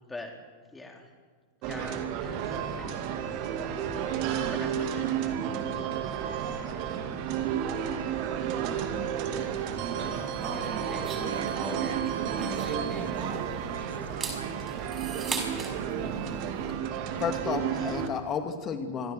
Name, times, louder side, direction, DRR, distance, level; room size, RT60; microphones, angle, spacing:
voice 1, 0.7-1.0 1.7-3.2 4.5-5.1, left 2 dB, 10° left, 2 dB, 3.8 m, -43 dB
sound 1, 1.6-18.1, right 8 dB, 45° right, 2.3 m, -32 dB
voice 2, 7.1-10.0 11.2-15.1, right 7 dB, 65° right, 10 dB, 1.5 m, -46 dB
sound 2, 10.4-13.6 14.0-15.7, right 4 dB, 20° right, 5.1 m, -37 dB
voice 3, 17.2-19.1, left 6 dB, 25° left, 6 dB, 2.5 m, -32 dB
25.0 x 15.5 x 7.8 m, 1.5 s
figure-of-eight pair, 90°, 0 cm